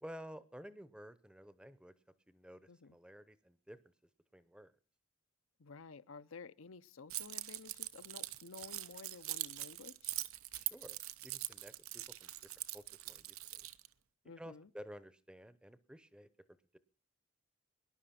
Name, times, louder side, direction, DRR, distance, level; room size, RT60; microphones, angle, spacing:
voice 1, 0.0-1.9 2.3-3.8 4.3-4.7 10.5-12.3 12.7-13.6 14.4-16.3, equal, 5° right, 0.7 m, -53 dB
voice 2, 5.6-10.1 14.2-14.7, left 4 dB, 75° left, 0.7 m, -53 dB
Keys jangling, 7.1-13.9, right 16 dB, 85° right, 0.8 m, -43 dB
18.5 x 11.0 x 5.8 m
head